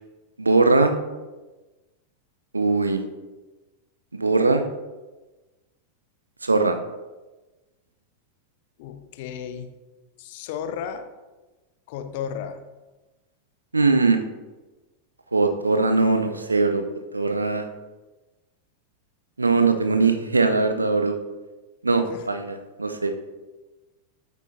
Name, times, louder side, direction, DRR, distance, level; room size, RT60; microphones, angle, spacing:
voice 1, 0.4-0.9 2.5-3.0 4.1-4.6 6.4-6.8 13.7-14.2 15.3-16.8 17.1-17.7 19.4-21.2 21.8-23.1, right 3 dB, 80° right, 7 dB, 0.6 m, -20 dB
voice 2, 8.8-9.7 10.2-11.0 11.9-12.6 22.1-22.2, left 8 dB, 50° left, 8 dB, 0.7 m, -33 dB
8.4 x 8.2 x 2.6 m, 1.2 s
figure-of-eight pair, 90°, 0 cm